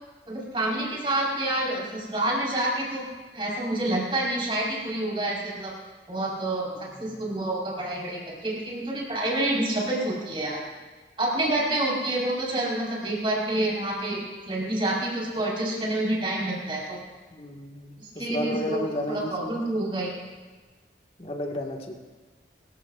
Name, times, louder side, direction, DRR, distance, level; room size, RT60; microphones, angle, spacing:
voice 1, 0.3-3.1 3.3-5.7 6.1-10.6 11.2-17.0 18.0-20.1, right 1 dB, 30° right, -4 dB, 4.6 m, -28 dB
voice 2, 17.3-19.6 21.2-21.9, left 1 dB, 35° left, 1 dB, 1.7 m, -32 dB
25.5 x 15.0 x 2.5 m, 1.3 s
head